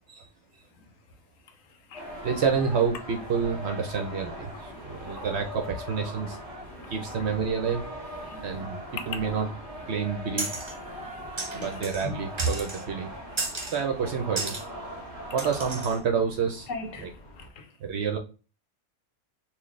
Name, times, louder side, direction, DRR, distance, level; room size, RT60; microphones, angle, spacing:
sound 1, 1.9-16.0, equal, ahead, 1.5 m, -41 dB
sound 2, 2.0-17.5, left 1 dB, 40° left, 0.7 m, -50 dB
voice 1, 2.2-6.4 6.9-7.8 8.4-8.8 9.1-9.5 9.9-10.5 11.5-13.1 13.7-14.6 15.3-16.7 17.0-17.1 17.8-18.2, right 6 dB, 60° right, 0.7 m, -28 dB
voice 2, 8.2-8.7 11.0-12.1 13.4-13.5 16.7-17.1 17.4-17.7, left 3 dB, 70° left, 1.0 m, -40 dB
sound 3, 10.4-10.8 11.4-12.1 12.4-12.8 13.4-13.8 14.4-14.6 15.4-16.0, right 2 dB, 30° right, 0.6 m, -33 dB
4.1 x 2.4 x 3.1 m
omnidirectional pair, 1.5 m